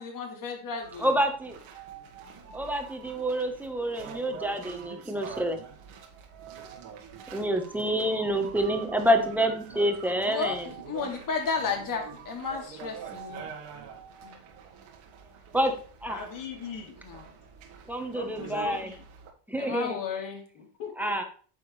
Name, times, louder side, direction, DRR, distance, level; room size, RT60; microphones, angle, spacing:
voice 1, 0.0-1.1 10.3-10.6 10.9-13.5 14.2-14.3 17.0-17.2 19.6-20.4, left 5 dB, 40° left, 2 dB, 2.5 m, -33 dB
sound 1, 0.8-19.3, right 7 dB, 70° right, 1.8 m, -45 dB
voice 2, 1.0-1.6 2.5-5.6 7.3-10.7 15.5-15.7 16.0-16.2 17.9-18.9 19.5-20.0 21.0-21.2, equal, 5° right, 5 dB, 1.3 m, -27 dB
voice 3, 16.1-17.0 18.1-19.0 20.5-21.1, left 5 dB, 75° left, 0 dB, 3.3 m, -39 dB
9.2 x 6.9 x 3.3 m, 0.42 s
cardioid pair, 130°, 48 cm